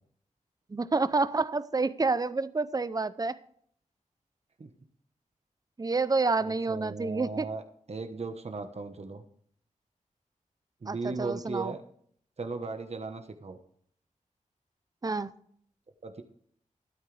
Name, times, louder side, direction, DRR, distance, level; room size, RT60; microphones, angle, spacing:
voice 1, 0.7-3.4 5.8-7.5 10.9-11.7 15.0-15.3, right 3 dB, 25° right, 0.6 m, -28 dB
voice 2, 6.4-7.6 7.9-9.2 10.8-11.8 12.4-13.6 16.0-16.2, right 3 dB, 50° right, 1.1 m, -37 dB
13.0 x 12.5 x 3.3 m
wide cardioid pair, 95°, 14 cm